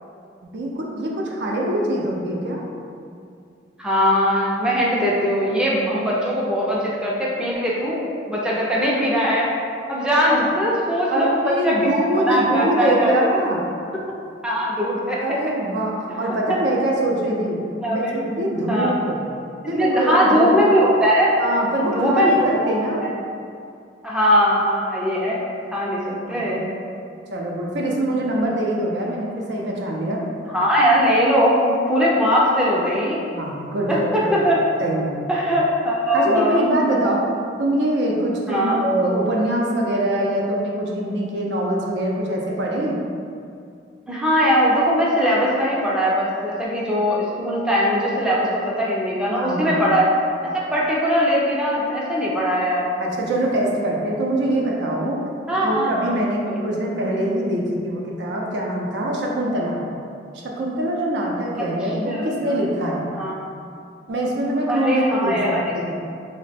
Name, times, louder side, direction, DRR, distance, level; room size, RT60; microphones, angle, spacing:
voice 1, 0.4-2.6 10.3-10.5 11.1-13.6 15.2-17.6 17.9-19.2 19.7-20.5 21.4-23.0 26.2-26.6 27.3-30.2 33.4-34.4 34.8-35.1 36.1-37.2 37.6-43.0 49.3-49.9 53.0-55.2 55.6-59.8 60.4-63.1 64.1-66.0, right 1 dB, 65° right, -2 dB, 0.5 m, -23 dB
voice 2, 3.8-9.5 9.9-13.2 14.4-15.2 16.5-16.6 17.8-18.2 18.7-18.9 19.7-21.3 21.9-23.1 24.0-25.4 25.7-26.6 30.5-33.2 33.9-34.6 35.3-36.7 38.5-38.8 44.1-50.1 50.4-52.9 55.5-56.1 56.4-56.7 61.6-61.7 62.0-62.3 63.1-63.4 64.7-65.7, equal, 5° right, -6 dB, 0.4 m, -20 dB
2.9 x 2.1 x 4.1 m, 2.4 s
head